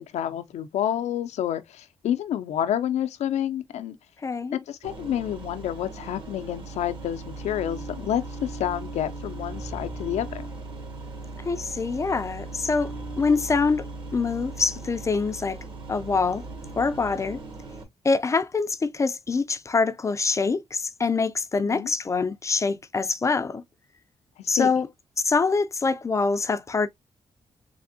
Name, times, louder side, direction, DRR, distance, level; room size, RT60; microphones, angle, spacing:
voice 1, 0.0-4.0 4.7-10.5 21.6-21.9 24.4-24.7, left 10 dB, 90° left, 0.4 m, -29 dB
voice 2, 4.2-4.6 11.4-13.9 14.1-15.6 15.9-16.4 16.8-17.4 18.0-23.6 24.5-24.9 25.2-26.9, left 4 dB, 30° left, 0.3 m, -25 dB
sound 1, 4.8-17.8, right 3 dB, 50° right, 1.3 m, -38 dB
3.5 x 3.3 x 2.6 m
cardioid pair, 110°, 11 cm